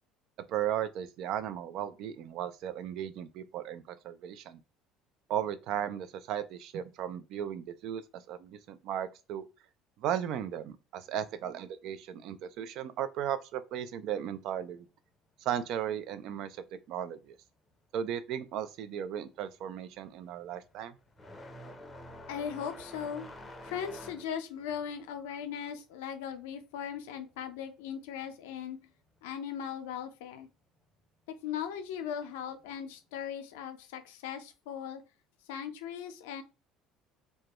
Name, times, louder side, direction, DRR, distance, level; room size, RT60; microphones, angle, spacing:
voice 1, 0.5-4.6 5.3-9.5 10.0-14.9 15.4-17.4 17.9-21.0, right 10 dB, 65° right, 0.3 m, -36 dB
sound 1, 18.7-18.9 19.2-27.5 27.8-28.9 29.9-30.0 30.8-30.9 32.6-32.7, left 1 dB, 20° left, 0.5 m, -49 dB
voice 2, 22.3-23.3 23.6-28.9 29.2-30.5 31.4-35.0 35.5-36.4, left 8 dB, 85° left, 0.4 m, -38 dB
2.2 x 2.1 x 2.8 m
supercardioid pair, 85°, 0 cm